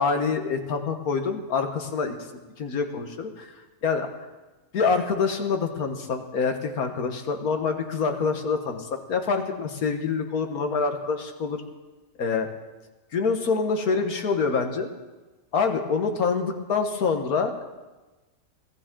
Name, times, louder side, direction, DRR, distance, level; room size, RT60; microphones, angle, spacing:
voice 1, 0.0-2.2 2.6-3.5 3.8-4.1 4.7-11.6 12.2-12.5 13.1-14.9 15.5-17.7, left 5 dB, 85° left, 5 dB, 1.8 m, -26 dB
21.5 x 15.0 x 3.8 m, 1.2 s
omnidirectional pair, 1.5 m